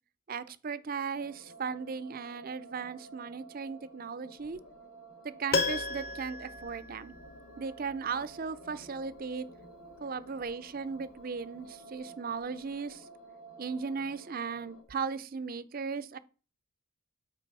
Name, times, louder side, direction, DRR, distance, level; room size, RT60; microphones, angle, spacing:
voice 1, 0.3-4.6 5.2-7.1 7.6-9.5 10.0-13.0 13.6-16.2, right 5 dB, 40° right, 0.5 m, -37 dB
sound 1, 1.1-14.8, right 2 dB, 75° left, 1.9 m, -52 dB
Piano, 5.5-7.6 7.9-8.0, left 3 dB, 45° left, 1.0 m, -33 dB
8.2 x 3.9 x 5.4 m
head